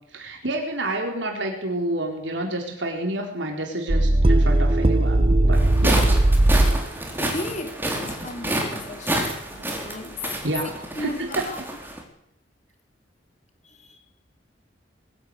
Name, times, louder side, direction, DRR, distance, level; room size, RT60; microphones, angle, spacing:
voice 1, 0.1-6.1 9.5-9.8 10.4-10.7 11.0-11.4, right 1 dB, 75° right, 2 dB, 4.3 m, -29 dB
sound 1, 3.9-6.9, right 1 dB, 30° right, 0.8 m, -18 dB
sound 2, 5.5-12.0, right 1 dB, 10° right, 4.4 m, -29 dB
voice 2, 7.2-9.4 9.8-10.2 11.0-11.6 13.6-14.0, left 2 dB, 40° left, 6 dB, 3.1 m, -35 dB
22.0 x 12.0 x 9.9 m, 0.79 s
head